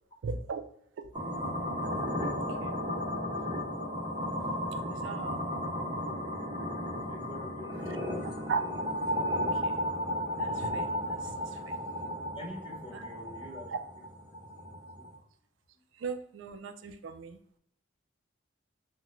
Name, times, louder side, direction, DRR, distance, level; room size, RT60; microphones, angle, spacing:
voice 1, 0.2-0.6 2.6-2.8 4.9-5.4 6.5-6.9 8.5-8.6 9.3-9.9 10.4-11.8 12.9-13.0 16.0-17.6, right 5 dB, 70° right, 9 dB, 0.3 m, -38 dB
sound 1, 1.1-4.2, left 4 dB, 70° left, 0.8 m, -53 dB
sound 2, 1.1-15.2, equal, 30° right, 0.9 m, -34 dB
voice 2, 6.9-8.0 12.1-14.0 14.6-15.3, left 1 dB, 30° left, 2 dB, 0.5 m, -48 dB
3.6 x 2.1 x 2.9 m, 0.69 s
head